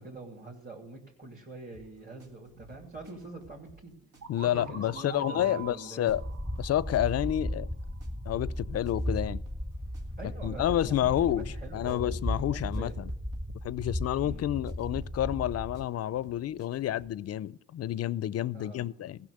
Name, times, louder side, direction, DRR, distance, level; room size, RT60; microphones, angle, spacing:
voice 1, 0.0-3.9 4.4-6.2 10.2-12.9 14.2-14.5 18.5-18.9, right 2 dB, 30° right, 2.7 m, -45 dB
sound 1, 1.7-17.2, right 3 dB, 85° right, 1.7 m, -57 dB
sound 2, 4.2-8.0, right 6 dB, 60° right, 2.6 m, -46 dB
voice 2, 4.3-6.2 6.6-7.7 8.3-9.4 10.2-13.1 13.6-19.2, left 12 dB, 55° left, 0.4 m, -29 dB
sound 3, 6.1-15.8, equal, 10° right, 0.6 m, -36 dB
15.0 x 6.1 x 6.5 m
cardioid pair, 75°, 31 cm